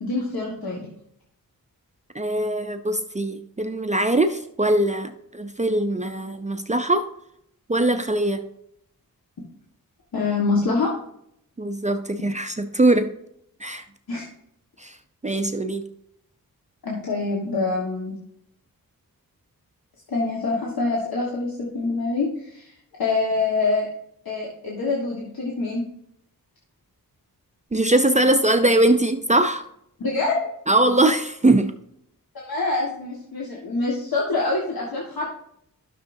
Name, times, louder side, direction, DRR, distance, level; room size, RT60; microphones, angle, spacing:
voice 1, 0.0-0.8 10.1-10.9 14.1-14.2 16.8-18.2 20.1-22.7 23.0-23.9 24.2-25.8 30.0-30.5 32.3-35.3, left 3 dB, 85° left, -3 dB, 1.7 m, -25 dB
voice 2, 2.1-7.1 7.7-8.4 11.6-13.1 13.6-13.8 14.8-15.0 15.2-15.8 27.7-29.6 30.7-31.7, right 2 dB, 20° right, 7 dB, 0.6 m, -21 dB
12.5 x 6.5 x 2.7 m, 0.73 s
wide cardioid pair, 90°, 35 cm